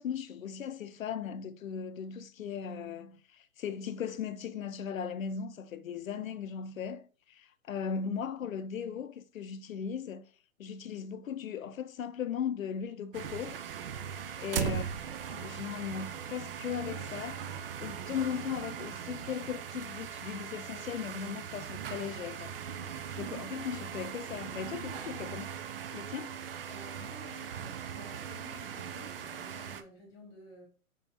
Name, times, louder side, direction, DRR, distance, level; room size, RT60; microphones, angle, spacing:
voice 1, 0.0-10.2 10.6-13.6 14.4-14.9 15.2-17.4 17.8-22.6 23.2-25.5 25.9-26.3, left 7 dB, 70° left, 0.6 m, -38 dB
sound 1, 13.1-29.8, right 8 dB, 45° right, 0.4 m, -39 dB
voice 2, 14.3-14.6 26.7-30.7, equal, 10° left, 1.5 m, -52 dB
5.1 x 3.5 x 2.8 m
hypercardioid pair, 135°, 42 cm